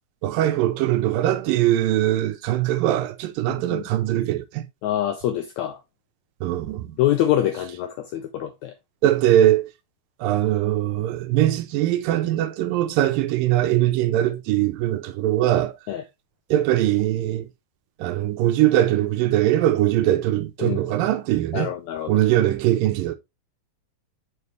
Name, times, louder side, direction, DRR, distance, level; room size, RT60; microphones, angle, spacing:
voice 1, 0.2-4.7 6.4-7.0 9.0-9.7 10.2-15.8 16.5-17.5 18.0-21.7 22.1-23.2, right 13 dB, 85° right, 2.4 m, -21 dB
voice 2, 4.8-5.8 7.0-8.7 15.9-16.0 20.6-20.8 21.5-22.1, left 12 dB, 90° left, 1.6 m, -25 dB
6.8 x 4.8 x 3.3 m
omnidirectional pair, 4.0 m